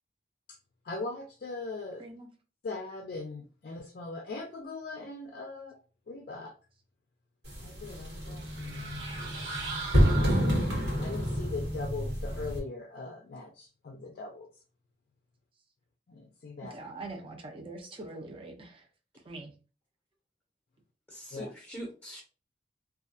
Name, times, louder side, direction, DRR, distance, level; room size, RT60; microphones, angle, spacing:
voice 1, 0.8-2.0 2.6-5.8 6.1-6.5 7.6-9.1 11.0-14.5 16.1-16.8 21.3-21.5, left 3 dB, 55° left, 0.4 m, -40 dB
Basketball Roll Hit Wall, 7.4-12.6, equal, 70° right, 1.2 m, -28 dB
sound 1, 8.4-11.0, right 4 dB, 90° right, 0.9 m, -40 dB
voice 2, 16.7-18.8 19.2-19.5, right 2 dB, 30° right, 0.5 m, -43 dB
voice 3, 21.1-22.2, equal, 15° left, 0.7 m, -42 dB
2.3 x 2.2 x 2.5 m
head